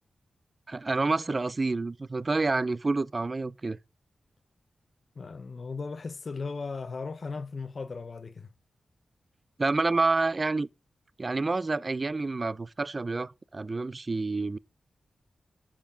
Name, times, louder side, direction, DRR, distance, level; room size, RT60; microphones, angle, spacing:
voice 1, 0.7-3.8 9.6-10.7 11.2-14.6, right 3 dB, 35° right, 0.4 m, -28 dB
voice 2, 5.2-8.5, left 4 dB, 50° left, 0.7 m, -37 dB
7.2 x 7.2 x 5.0 m
cardioid pair, 80°, 0 cm